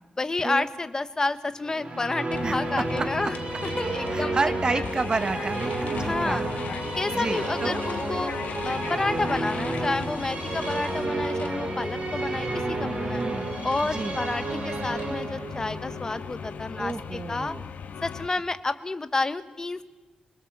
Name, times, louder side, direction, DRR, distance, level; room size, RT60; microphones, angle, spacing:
voice 1, 0.2-3.4 3.8-4.4 6.0-6.4 7.0-8.3 8.6-13.2 13.6-17.5 18.0-19.8, left 3 dB, 25° left, 11 dB, 1.2 m, -30 dB
Musical instrument, 1.6-17.1, right 2 dB, 50° right, 4.6 m, -31 dB
sound 1, 2.3-18.3, left 6 dB, 80° left, 1.2 m, -38 dB
voice 2, 2.4-3.3 4.1-6.8 7.1-7.8 13.1-13.6 13.9-14.2 16.8-17.7, right 3 dB, 30° right, 12 dB, 1.1 m, -31 dB
sound 2, 4.8-11.0, left 5 dB, 55° left, 1.9 m, -40 dB
25.5 x 21.5 x 7.3 m, 1.1 s
wide cardioid pair, 145°, 3 cm